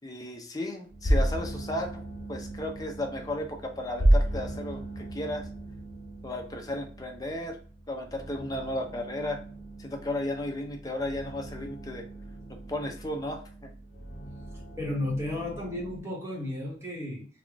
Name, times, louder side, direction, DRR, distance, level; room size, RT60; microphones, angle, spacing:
voice 1, 0.0-2.0 2.3-5.5 6.2-7.6 7.9-9.4 9.8-12.1 12.5-13.7, left 1 dB, 20° left, 0.6 m, -34 dB
sound 1, 0.9-16.0, right 1 dB, 50° left, 1.0 m, -33 dB
voice 2, 14.8-17.3, left 1 dB, 15° right, 1.3 m, -33 dB
3.5 x 2.4 x 3.5 m
head